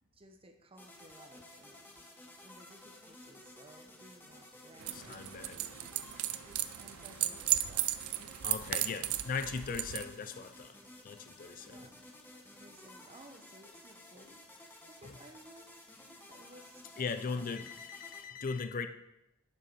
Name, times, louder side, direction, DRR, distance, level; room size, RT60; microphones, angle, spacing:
voice 1, 0.1-2.0 2.4-6.0 6.7-7.9 8.5-9.1 11.6-12.0 12.6-15.9 16.3-17.7, right 1 dB, 25° right, 6 dB, 0.9 m, -58 dB
sound 1, 0.8-18.2, left 1 dB, 10° left, 1.0 m, -54 dB
sound 2, 4.8-10.0, right 14 dB, 80° right, 0.5 m, -35 dB
voice 2, 4.9-5.6 8.4-10.7 11.0-11.8 17.0-18.9, left 5 dB, 40° left, 10 dB, 0.4 m, -38 dB
7.4 x 6.5 x 5.3 m, 0.88 s
head